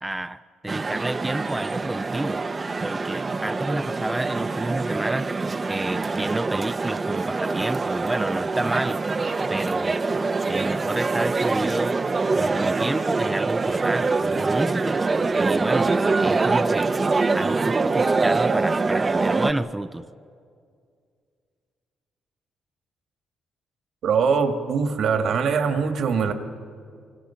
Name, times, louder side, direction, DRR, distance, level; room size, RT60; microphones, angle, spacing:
voice 1, 0.0-2.4 2.8-5.3 5.7-9.0 9.5-10.0 10.5-12.0 12.4-15.0 15.4-16.9 17.3-20.1, right 1 dB, 10° right, 10 dB, 0.5 m, -29 dB
sound 1, 0.7-19.5, right 3 dB, 30° right, 0.9 m, -24 dB
voice 2, 24.0-26.3, right 6 dB, 65° right, 6 dB, 2.0 m, -22 dB
25.0 x 25.0 x 5.8 m, 2.2 s
cardioid pair, 90°, 0 cm